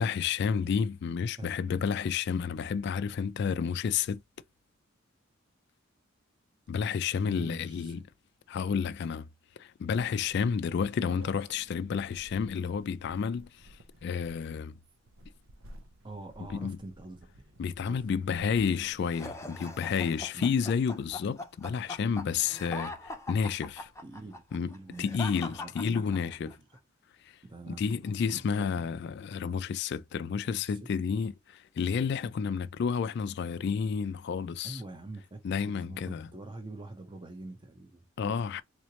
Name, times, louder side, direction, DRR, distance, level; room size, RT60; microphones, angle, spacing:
voice 1, 0.0-4.2 6.7-8.0 8.5-9.3 9.6-14.7 16.5-16.8 17.6-23.9 24.5-24.7 25.0-26.5 27.2-27.4 27.8-34.8 35.4-36.3 38.2-38.6, left 6 dB, 55° left, 0.3 m, -30 dB
voice 2, 7.2-8.0 16.0-17.5 17.9-18.7 20.3-20.5 24.0-26.7 27.4-28.9 30.4-30.8 34.6-38.0, right 2 dB, 25° right, 0.7 m, -46 dB
sound 1, 9.9-24.7, right 1 dB, 80° right, 0.8 m, -55 dB
sound 2, 19.1-26.6, left 2 dB, 15° left, 0.6 m, -41 dB
3.8 x 3.1 x 2.8 m
head